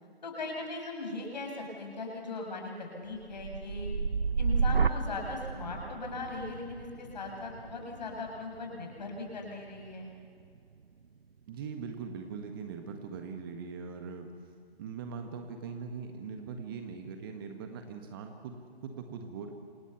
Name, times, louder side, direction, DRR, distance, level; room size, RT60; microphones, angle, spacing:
voice 1, 0.2-3.9 4.4-10.1, left 3 dB, 45° left, 1 dB, 7.3 m, -39 dB
sound 1, 3.1-11.2 11.6-12.1, right 5 dB, 60° right, 0.8 m, -33 dB
voice 2, 11.5-14.3 14.8-19.5, right 5 dB, 20° right, 5 dB, 1.7 m, -41 dB
29.5 x 27.0 x 7.2 m, 2.2 s
figure-of-eight pair, 140°, 32 cm